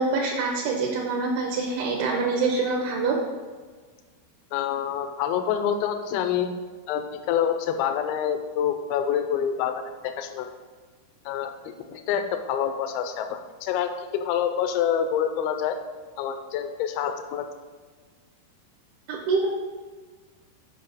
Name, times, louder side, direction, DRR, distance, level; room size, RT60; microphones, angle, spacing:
voice 1, 0.0-3.2 19.1-19.5, right 4 dB, 75° right, -1 dB, 2.6 m, -25 dB
voice 2, 4.5-6.5 6.9-10.5 11.3-11.5 11.9-15.8 16.2-17.4, left 9 dB, 80° left, 7 dB, 2.3 m, -27 dB
6.9 x 5.6 x 4.1 m, 1.4 s
omnidirectional pair, 4.7 m